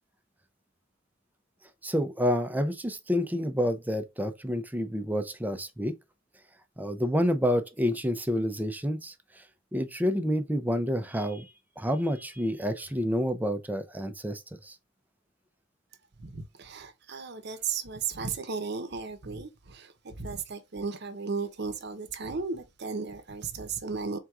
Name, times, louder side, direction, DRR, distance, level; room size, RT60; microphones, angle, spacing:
voice 1, 1.8-5.9 6.8-9.1 9.7-11.5 11.8-14.7, equal, 10° right, 0.5 m, -28 dB
voice 2, 16.2-24.2, right 5 dB, 55° right, 0.8 m, -35 dB
4.4 x 3.7 x 2.4 m
head